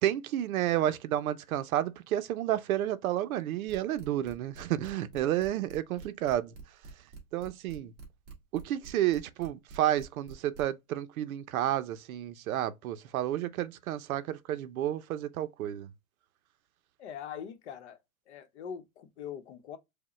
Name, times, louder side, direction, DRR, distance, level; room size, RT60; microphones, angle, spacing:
voice 1, 0.0-6.5 7.3-7.9 8.5-15.9, right 12 dB, 70° right, 0.6 m, -31 dB
sound 1, 3.7-10.6, right 3 dB, 25° right, 1.3 m, -47 dB
voice 2, 17.0-18.0 18.3-19.8, left 8 dB, 50° left, 0.8 m, -42 dB
4.8 x 2.2 x 3.0 m
supercardioid pair, 175°, 44 cm